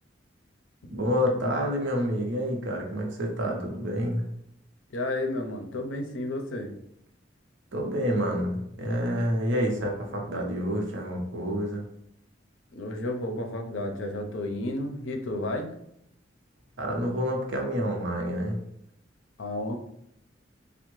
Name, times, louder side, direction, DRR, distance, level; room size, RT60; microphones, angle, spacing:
voice 1, 0.9-4.2 7.7-11.8 16.8-18.6, equal, 70° right, 1 dB, 0.6 m, -28 dB
voice 2, 4.9-6.7 12.7-15.7 19.4-19.8, left 1 dB, 85° left, 4 dB, 0.5 m, -32 dB
3.3 x 2.1 x 3.1 m, 0.76 s
head